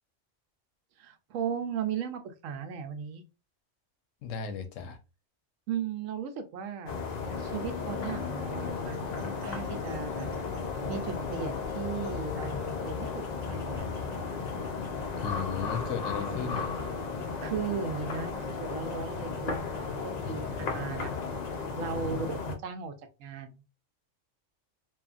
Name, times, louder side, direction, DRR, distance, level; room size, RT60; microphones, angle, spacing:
voice 1, 1.0-3.2 5.7-7.0 7.4-10.3 10.8-13.9 17.4-21.1 21.8-23.6, right 6 dB, 85° right, 1.0 m, -37 dB
voice 2, 4.2-5.0 15.2-16.7 20.2-20.7 21.8-22.2, left 6 dB, 85° left, 1.0 m, -36 dB
sound 1, 6.9-22.6, left 4 dB, 65° left, 0.4 m, -34 dB
2.9 x 2.4 x 2.4 m
omnidirectional pair, 1.3 m